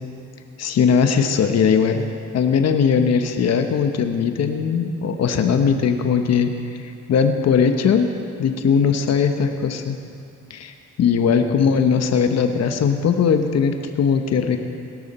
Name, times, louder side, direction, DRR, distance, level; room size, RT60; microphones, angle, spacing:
voice 1, 0.6-8.1 8.4-10.0 10.5-14.6, left 6 dB, 60° left, 6 dB, 1.1 m, -19 dB
18.0 x 12.0 x 4.3 m, 2.4 s
cardioid pair, 90°, 30 cm